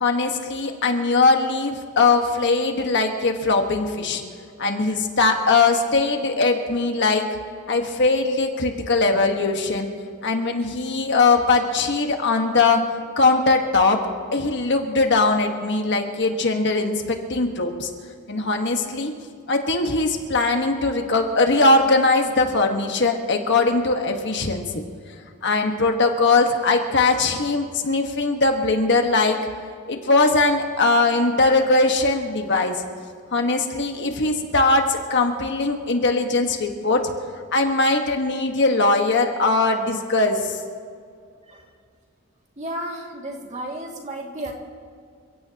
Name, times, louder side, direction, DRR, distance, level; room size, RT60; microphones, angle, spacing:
voice 1, 0.0-4.2 4.6-7.3 7.7-9.9 10.2-12.8 13.2-14.0 14.3-17.9 18.3-19.1 19.5-24.8 25.4-29.4 29.9-32.8 33.3-37.1 37.5-40.6, left 3 dB, 55° left, 4 dB, 1.6 m, -20 dB
voice 2, 42.6-44.5, right 1 dB, 30° right, 0 dB, 2.4 m, -33 dB
28.5 x 16.5 x 3.0 m, 2.2 s
head